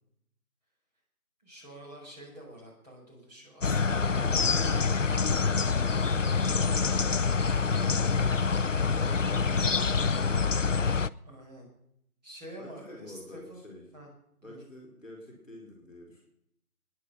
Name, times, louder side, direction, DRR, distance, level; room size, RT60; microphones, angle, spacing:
voice 1, 1.4-5.7 11.3-11.7 12.2-13.6 13.9-14.1 14.4-14.6, right 1 dB, 25° right, -3 dB, 5.5 m, -48 dB
sound 1, 3.6-11.1, left 5 dB, 55° left, 0.5 m, -26 dB
voice 2, 7.5-9.7 12.6-13.8 14.4-16.2, left 1 dB, ahead, -16 dB, 3.0 m, -48 dB
24.0 x 10.5 x 5.7 m, 0.75 s
figure-of-eight pair, 165°, 45 cm